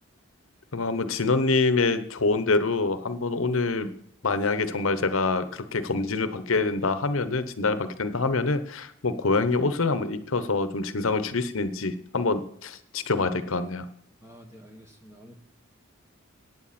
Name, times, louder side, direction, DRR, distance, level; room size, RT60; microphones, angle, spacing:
voice 1, 0.7-4.0 4.2-13.9, left 3 dB, 80° left, 12 dB, 0.9 m, -26 dB
voice 2, 14.2-15.4, equal, 15° right, 4 dB, 1.3 m, -49 dB
15.0 x 9.5 x 4.3 m, 0.66 s
head